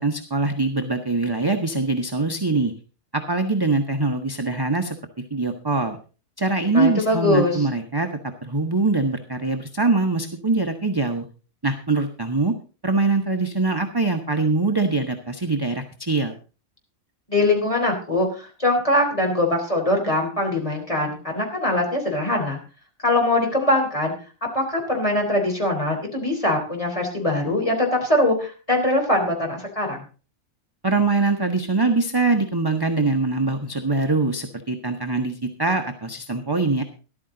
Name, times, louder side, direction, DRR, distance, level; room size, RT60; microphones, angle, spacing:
voice 1, 0.0-2.7 3.1-5.0 5.3-6.0 6.4-11.3 11.6-12.5 12.8-16.3 30.8-36.8, right 3 dB, 20° right, 5 dB, 0.9 m, -23 dB
voice 2, 6.7-7.7 17.3-22.6 23.0-24.1 24.5-30.0, left 1 dB, 25° left, 1 dB, 3.8 m, -22 dB
13.5 x 12.0 x 3.8 m, 0.35 s
omnidirectional pair, 1.4 m